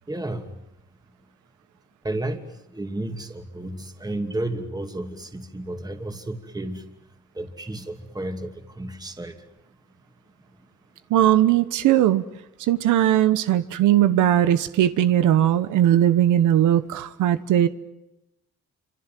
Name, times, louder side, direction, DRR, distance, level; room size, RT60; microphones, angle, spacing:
voice 1, 0.1-0.5 2.0-2.4 2.7-6.8 7.4-8.5 8.8-9.3, right 1 dB, 15° right, 5 dB, 2.6 m, -32 dB
voice 2, 11.1-12.2 12.6-17.7, right 11 dB, 85° right, 12 dB, 1.1 m, -19 dB
27.5 x 26.0 x 7.6 m, 0.93 s
cardioid pair, 90°, 30 cm